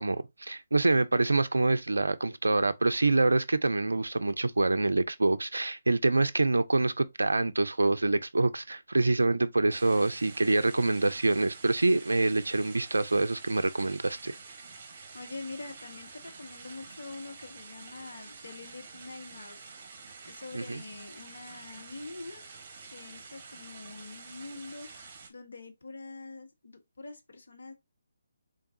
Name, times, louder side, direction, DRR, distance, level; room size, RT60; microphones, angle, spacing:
voice 1, 0.0-14.4 20.5-20.8, right 2 dB, 70° right, 0.4 m, -26 dB
sound 1, 9.7-25.3, right 4 dB, 35° right, 1.1 m, -48 dB
voice 2, 14.7-19.7 20.2-22.4 22.9-27.7, left 3 dB, 65° left, 1.1 m, -45 dB
3.8 x 3.5 x 2.7 m
figure-of-eight pair, 145°, 0 cm